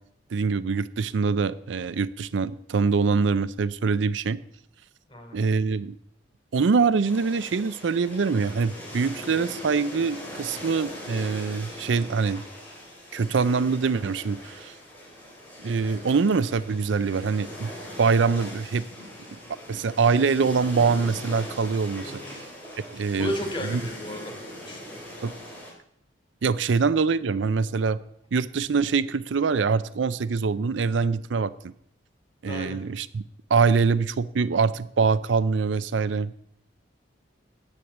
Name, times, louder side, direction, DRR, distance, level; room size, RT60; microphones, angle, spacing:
voice 1, 0.3-4.4 5.3-6.0 6.5-12.4 13.1-14.7 15.6-17.7 18.0-18.9 19.7-22.2 22.9-23.3 23.6-23.8 25.2-25.3 26.4-28.0 28.3-31.7 32.4-33.2 33.5-36.4, right 5 dB, 75° right, 16 dB, 0.5 m, -24 dB
sound 1, 7.0-25.7, equal, 10° left, 3.9 m, -41 dB
voice 2, 22.0-22.4 23.1-24.4 24.6-25.0 26.7-26.9 32.4-32.8, equal, 25° left, 1 dB, 3.1 m, -34 dB
9.8 x 8.7 x 8.0 m, 0.72 s
head